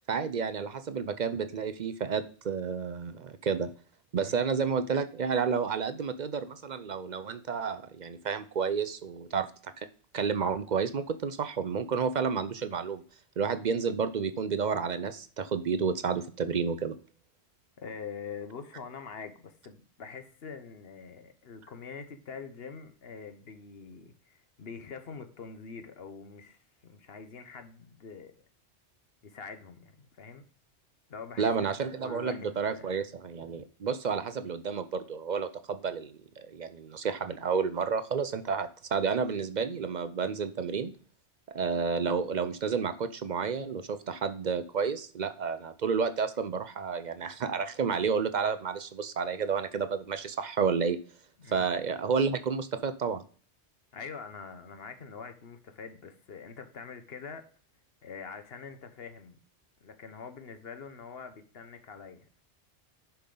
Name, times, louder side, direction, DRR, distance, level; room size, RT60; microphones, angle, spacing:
voice 1, 0.1-3.7 4.1-9.7 10.1-13.0 13.4-17.0 31.4-40.9 41.5-51.0 51.5-53.2, right 6 dB, 50° right, 12 dB, 0.6 m, -31 dB
voice 2, 17.8-28.5 29.2-30.4 31.1-32.9 51.4-51.7 53.9-57.5 58.0-59.4 59.8-62.4, left 5 dB, 60° left, 8 dB, 1.1 m, -44 dB
10.0 x 5.8 x 3.8 m, 0.43 s
omnidirectional pair, 1.2 m